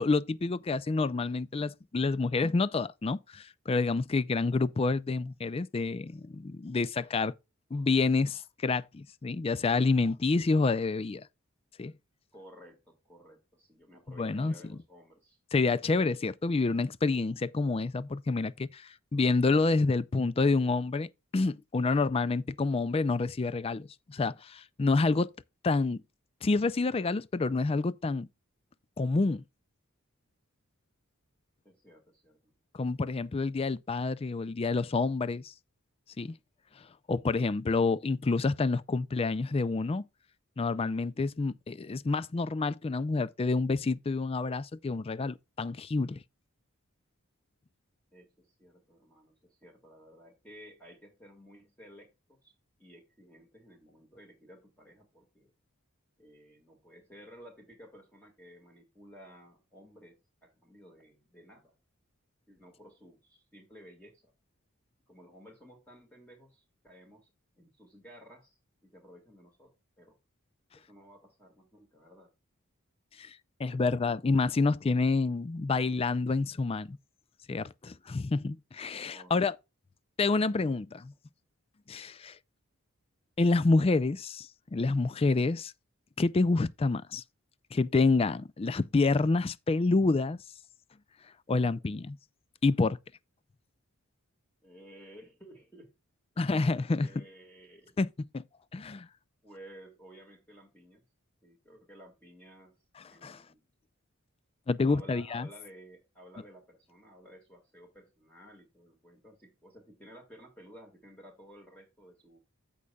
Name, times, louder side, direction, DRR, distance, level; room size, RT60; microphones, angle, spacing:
voice 1, 0.0-7.3 7.7-11.3 11.8-11.9 14.2-14.5 15.5-25.3 25.6-26.0 26.4-28.3 29.0-29.4 32.7-35.5 36.2-36.3 37.1-40.0 40.6-46.2 73.2-77.0 77.5-79.5 80.2-81.1 81.9-82.4 83.4-85.7 86.2-87.2 87.7-90.4 91.5-92.2 92.6-93.0 96.4-97.2 98.0-98.1 98.3-98.4 98.7-99.1 103.2-103.4 104.7-105.5, left 3 dB, 25° left, 0.4 m, -28 dB
voice 2, 12.3-15.4 31.6-32.6 48.1-52.5 52.8-55.5 56.2-61.7 62.5-64.3 65.1-67.3 67.6-70.2 70.7-72.3 73.7-74.0 74.6-74.9 79.1-79.5 91.5-91.8 94.6-95.9 96.3-96.5 97.0-98.0 99.4-101.0 101.4-102.8 103.1-103.6 104.9-112.4, equal, 5° left, 2.0 m, -54 dB
15.0 x 5.4 x 2.3 m
head